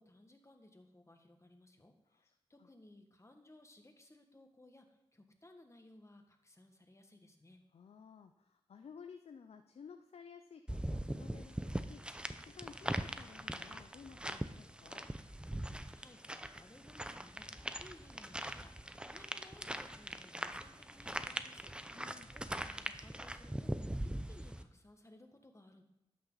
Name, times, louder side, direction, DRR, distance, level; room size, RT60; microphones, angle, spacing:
voice 1, 0.0-7.6 15.9-17.5 17.8-18.7 19.0-25.8, left 1 dB, 30° left, 4 dB, 1.8 m, -61 dB
voice 2, 7.7-15.1 21.9-22.3, left 6 dB, 80° left, 7 dB, 0.6 m, -55 dB
sound 1, 10.7-24.6, right 1 dB, 10° right, 0.8 m, -41 dB
12.0 x 8.6 x 4.0 m, 0.87 s
cardioid pair, 50°, 10 cm